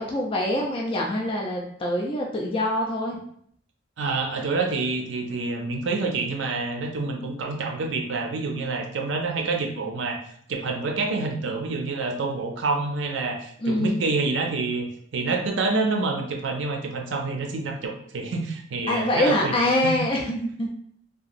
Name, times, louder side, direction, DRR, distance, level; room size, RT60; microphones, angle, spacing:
voice 1, 0.0-3.2 13.6-14.0 18.9-20.7, left 1 dB, 25° left, -1 dB, 0.4 m, -25 dB
voice 2, 4.0-10.2 10.5-14.9 15.1-19.5 19.8-19.9, right 3 dB, 70° right, 3 dB, 0.5 m, -27 dB
2.8 x 2.4 x 2.5 m, 0.65 s
head